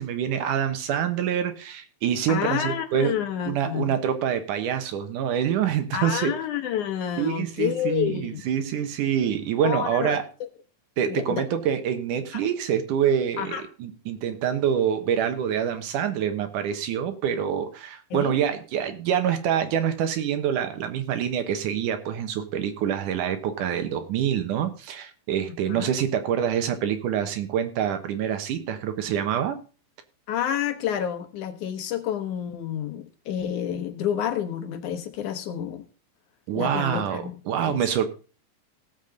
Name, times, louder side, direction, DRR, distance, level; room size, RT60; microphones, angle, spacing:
voice 1, 0.0-3.1 3.5-6.3 7.2-10.2 11.0-29.6 36.5-38.1, right 9 dB, 75° right, 8 dB, 2.7 m, -26 dB
voice 2, 2.3-3.9 5.9-8.4 9.6-10.5 11.1-11.4 12.3-12.5 13.4-13.6 18.1-18.4 25.7-25.9 30.3-35.8 36.5-37.4 37.7-37.8, left 9 dB, 70° left, 7 dB, 2.4 m, -29 dB
17.0 x 7.4 x 3.9 m, 0.35 s
omnidirectional pair, 3.8 m